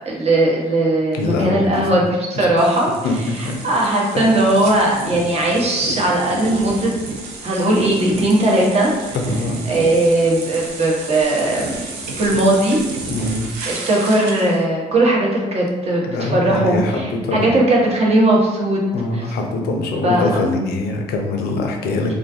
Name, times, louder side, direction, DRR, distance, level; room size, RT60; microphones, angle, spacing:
voice 1, 0.1-2.9 3.4-6.9 7.4-9.2 9.7-11.8 12.2-12.8 13.7-18.8 19.1-19.2 20.0-20.3, right 1 dB, 35° right, -3 dB, 0.8 m, -18 dB
voice 2, 1.1-2.0 2.3-2.5 3.0-3.5 4.1-4.5 9.1-9.6 13.1-13.5 16.0-17.5 18.9-22.1, left 2 dB, 65° left, 3 dB, 0.5 m, -23 dB
sound 1, 2.6-14.6, right 3 dB, 70° right, 0.5 m, -31 dB
2.4 x 2.4 x 2.5 m, 1.1 s
hypercardioid pair, 55°, 18 cm